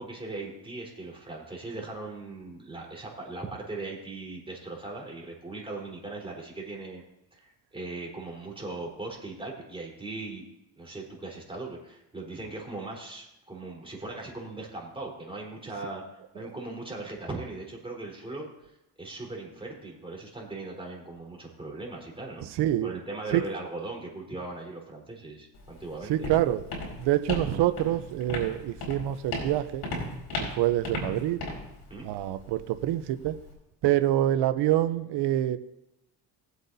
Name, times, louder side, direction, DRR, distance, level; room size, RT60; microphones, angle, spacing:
voice 1, 0.0-7.0 7.3-10.4 10.8-16.0 16.3-18.5 19.0-22.6 22.8-26.3 31.9-32.1, right 2 dB, 15° right, -2 dB, 4.1 m, -39 dB
voice 2, 22.6-22.9 23.3-23.4 26.1-26.6 27.0-29.8 30.4-31.4 32.0-33.4 33.8-35.6, right 13 dB, 70° right, 11 dB, 0.8 m, -26 dB
Walk footsteps, 25.5-33.5, left 2 dB, 60° left, 4.9 m, -37 dB
21.0 x 8.1 x 2.8 m, 0.87 s
cardioid pair, 85°, 42 cm